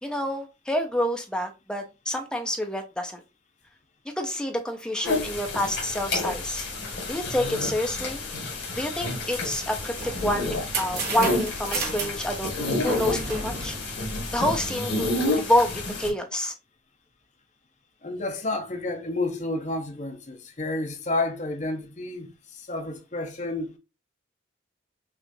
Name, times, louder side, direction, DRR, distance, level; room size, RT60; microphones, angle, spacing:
voice 1, 0.0-3.2 4.2-6.6 7.1-8.2 8.8-12.5 12.8-13.8 14.3-16.5, left 1 dB, 5° left, 0.5 m, -28 dB
sound 1, 5.0-16.1, left 2 dB, 70° left, 1.7 m, -30 dB
sound 2, 9.6-14.7, right 3 dB, 50° right, 1.1 m, -34 dB
voice 2, 18.0-22.3 22.6-23.8, left 2 dB, 40° left, 0.8 m, -30 dB
5.7 x 2.4 x 2.6 m
head